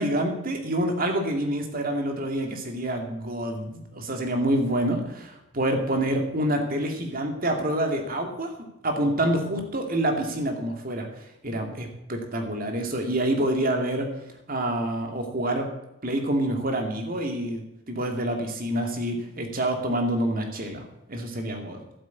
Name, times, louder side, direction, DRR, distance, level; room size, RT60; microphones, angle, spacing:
voice 1, 0.0-8.5 8.8-11.1 11.4-14.1 14.5-15.7 16.0-21.8, right 1 dB, 45° right, 4 dB, 2.5 m, -27 dB
12.0 x 8.6 x 8.5 m, 0.90 s
head